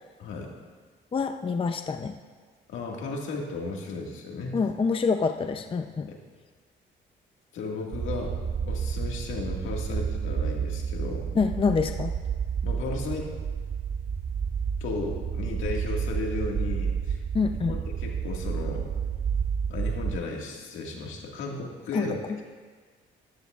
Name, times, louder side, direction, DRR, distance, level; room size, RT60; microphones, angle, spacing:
voice 1, 0.2-0.5 2.7-4.6 6.1-6.2 7.5-8.4 8.6-11.3 12.6-13.3 14.8-17.2 17.7-18.9 19.7-22.4, left 3 dB, 80° left, 0 dB, 1.9 m, -34 dB
voice 2, 1.1-2.2 4.5-6.1 11.3-12.1 17.3-17.8 21.9-22.1, left 5 dB, 25° left, 7 dB, 0.5 m, -26 dB
sound 1, 7.9-20.2, right 7 dB, 35° right, 0.4 m, -30 dB
14.0 x 13.0 x 2.4 m, 1.5 s
cardioid pair, 90°, 20 cm